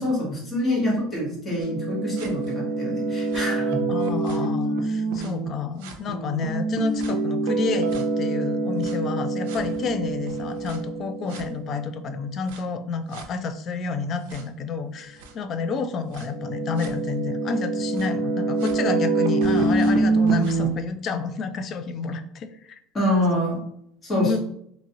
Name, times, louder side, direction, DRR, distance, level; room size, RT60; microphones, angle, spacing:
voice 1, 0.0-3.8 22.9-23.6 24.0-24.4, left 1 dB, 20° left, -4 dB, 1.3 m, -25 dB
sound 1, 1.6-5.5 5.8-11.9 12.5-12.6 13.1-13.2 14.3-14.4 15.2-15.3 16.1-20.7, right 3 dB, 80° right, 0.4 m, -25 dB
voice 2, 3.9-22.8 24.2-24.4, left 5 dB, 35° left, 9 dB, 0.3 m, -30 dB
2.9 x 2.5 x 2.7 m, 0.70 s
supercardioid pair, 140°, 0 cm